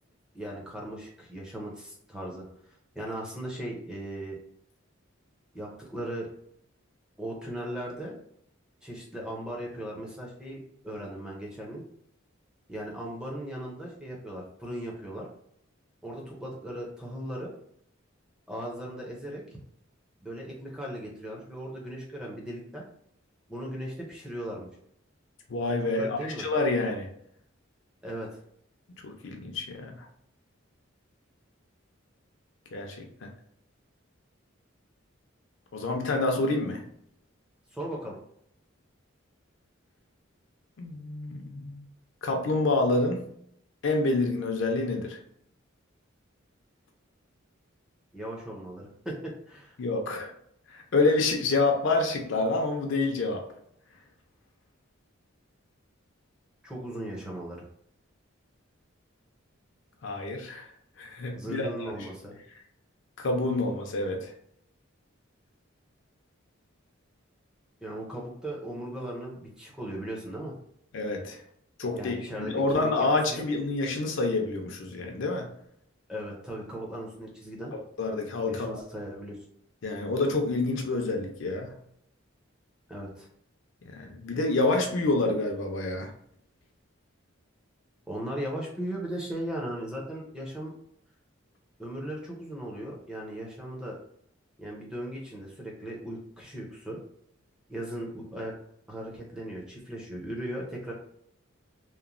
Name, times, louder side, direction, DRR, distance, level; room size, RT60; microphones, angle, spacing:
voice 1, 0.3-2.4 2.9-4.4 5.5-6.3 7.2-8.1 8.8-11.8 12.7-15.3 16.0-17.5 18.5-19.4 20.2-22.8 23.5-24.7 25.8-26.5 28.0-28.3 37.7-38.1 48.1-49.8 56.6-57.7 61.3-62.4 67.8-70.5 71.9-73.4 76.1-77.7 78.5-79.4 82.9-83.3 88.1-90.7 91.8-94.0 94.6-97.0 97.7-98.5 98.9-100.9, right 1 dB, 5° right, -2 dB, 0.5 m, -37 dB
voice 2, 25.5-27.1 29.0-30.1 32.7-33.0 33.2-33.3 35.7-36.8 40.8-41.8 42.2-43.3 43.8-45.2 49.8-50.3 50.7-53.5 60.0-60.7 61.0-62.1 63.2-64.3 70.9-71.4 71.8-75.5 77.7-78.8 79.8-81.7 83.9-86.1, left 2 dB, 65° left, 3 dB, 0.5 m, -28 dB
3.0 x 2.1 x 2.5 m, 0.69 s
head